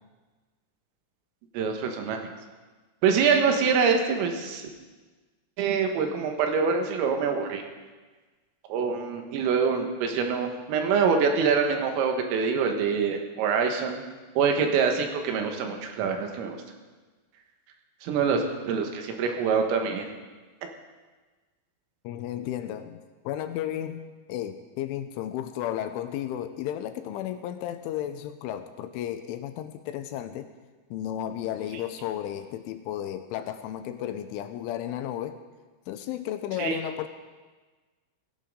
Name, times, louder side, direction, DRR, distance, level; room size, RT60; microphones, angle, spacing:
voice 1, 1.6-2.2 3.0-4.7 5.6-7.6 8.7-14.0 14.4-16.6 18.0-20.1 36.6-36.8, right 5 dB, 90° right, 4 dB, 4.1 m, -25 dB
voice 2, 22.0-24.0 24.3-30.5 30.9-35.4 35.9-37.1, left 11 dB, 85° left, 9 dB, 3.0 m, -33 dB
17.5 x 17.0 x 3.8 m, 1.3 s
omnidirectional pair, 5.9 m